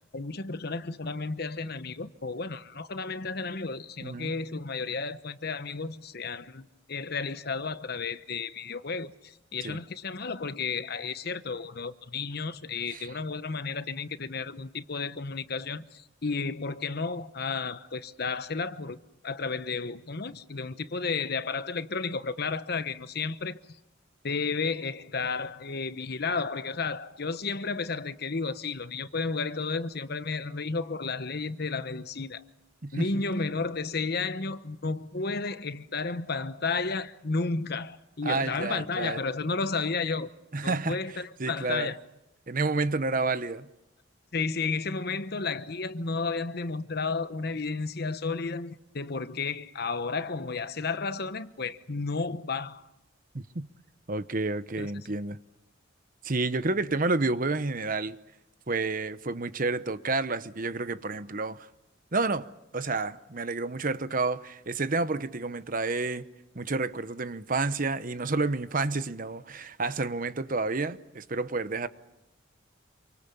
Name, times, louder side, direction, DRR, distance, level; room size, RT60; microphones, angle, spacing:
voice 1, 0.1-19.0 19.2-23.6 24.2-32.4 32.9-40.3 40.6-42.0 44.3-52.9 54.8-55.1, left 4 dB, 50° left, 1.0 m, -32 dB
voice 2, 4.0-4.3 9.6-9.8 12.9-13.1 32.8-33.1 38.2-39.2 40.5-41.0 41.4-41.9 42.5-43.7 53.3-53.7 54.1-55.4 56.2-58.2 58.7-61.7 62.1-62.5 62.7-66.2 66.5-71.9, right 3 dB, 45° right, 0.9 m, -30 dB
28.0 x 24.5 x 7.0 m
head